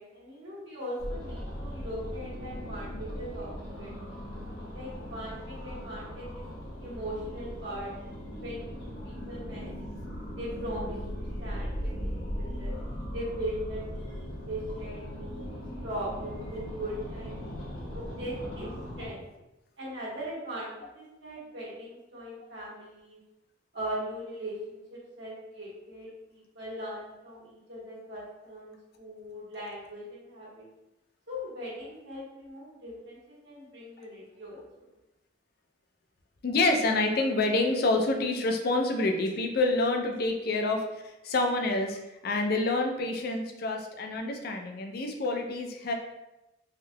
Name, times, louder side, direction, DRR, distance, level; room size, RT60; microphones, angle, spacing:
voice 1, 0.0-4.1 4.7-6.4 6.8-7.9 8.4-9.9 10.3-12.8 13.1-17.4 17.9-18.7 19.0-19.2 19.8-23.2 23.7-30.7 31.3-34.6, equal, 70° right, -7 dB, 1.3 m, -40 dB
sound 1, 1.0-19.1, equal, 85° left, 1.0 m, -38 dB
voice 2, 36.4-45.9, left 2 dB, 55° left, 4 dB, 0.4 m, -27 dB
3.5 x 2.7 x 2.2 m, 0.97 s
head